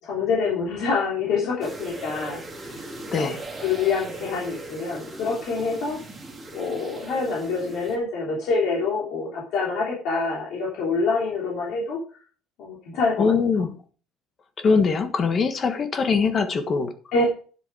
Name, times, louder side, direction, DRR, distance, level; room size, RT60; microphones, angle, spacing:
voice 1, 0.0-2.9 3.2-3.3 3.6-6.0 6.5-12.0 12.6-13.3 17.1-17.2, left 4 dB, 60° left, -4 dB, 3.4 m, -26 dB
sound 1, 1.6-8.0, right 2 dB, 10° right, 2.3 m, -39 dB
voice 2, 13.2-13.7 14.6-16.9, left 5 dB, 25° left, 9 dB, 1.4 m, -22 dB
10.0 x 7.7 x 4.9 m, 0.39 s
cardioid pair, 170°, 0 cm